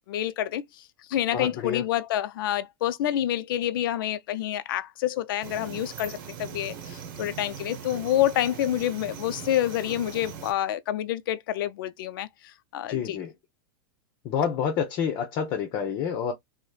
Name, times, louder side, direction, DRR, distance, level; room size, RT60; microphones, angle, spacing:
voice 1, 0.1-13.2, left 12 dB, 70° left, 0.4 m, -28 dB
voice 2, 1.3-1.8 12.9-13.3 14.2-16.3, left 7 dB, 45° left, 0.7 m, -28 dB
sound 1, 5.4-10.5, right 7 dB, 60° right, 0.8 m, -40 dB
3.1 x 2.0 x 2.3 m
hypercardioid pair, 110°, 12 cm